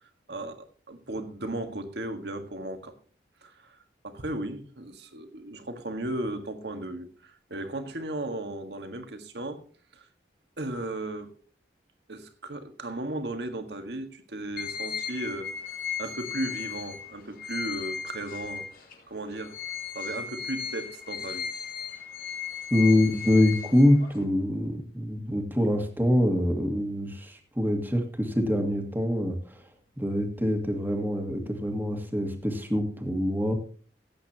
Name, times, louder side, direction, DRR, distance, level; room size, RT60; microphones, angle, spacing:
voice 1, 0.3-2.9 3.4-3.8 4.0-9.6 9.9-10.0 10.6-11.3 12.1-15.5 16.0-18.7 19.1-19.5 19.9-21.5, right 1 dB, 65° right, 7 dB, 1.7 m, -35 dB
sound 1, 14.6-18.9 19.4-24.2, left 7 dB, 50° left, 2.3 m, -36 dB
voice 2, 22.7-29.6 30.0-33.5, left 1 dB, 10° right, 4 dB, 1.8 m, -25 dB
17.0 x 8.6 x 2.9 m, 0.43 s
head